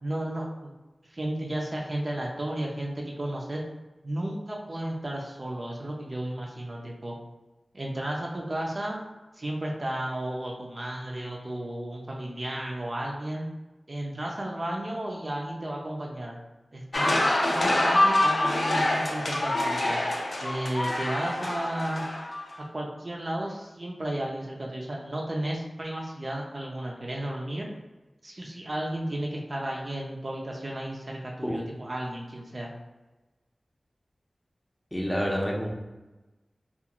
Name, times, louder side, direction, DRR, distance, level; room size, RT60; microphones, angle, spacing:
voice 1, 0.0-0.7 1.1-3.6 4.0-7.1 7.7-9.0 9.4-13.5 13.9-16.4 16.7-17.2 17.5-20.0 20.4-22.0 22.7-27.7 28.2-32.7, right 1 dB, 45° right, -1 dB, 0.5 m, -33 dB
sound 1, 16.9-22.6, left 1 dB, 60° left, 0.5 m, -26 dB
voice 2, 34.9-35.7, equal, 15° left, -2 dB, 0.6 m, -28 dB
2.4 x 2.3 x 2.9 m, 1.1 s
wide cardioid pair, 50°, 0 cm